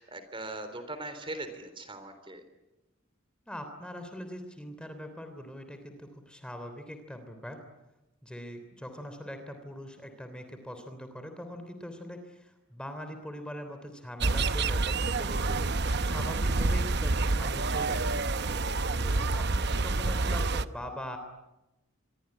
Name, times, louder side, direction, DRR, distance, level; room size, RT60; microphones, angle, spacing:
voice 1, 0.0-2.4 19.0-19.4, right 2 dB, 25° right, 9 dB, 3.6 m, -40 dB
voice 2, 3.5-7.6 8.2-18.2 18.9-21.2, equal, 5° left, 7 dB, 3.2 m, -42 dB
sound 1, 14.2-20.7, right 3 dB, 55° right, 0.9 m, -28 dB
26.5 x 22.5 x 10.0 m, 0.98 s
head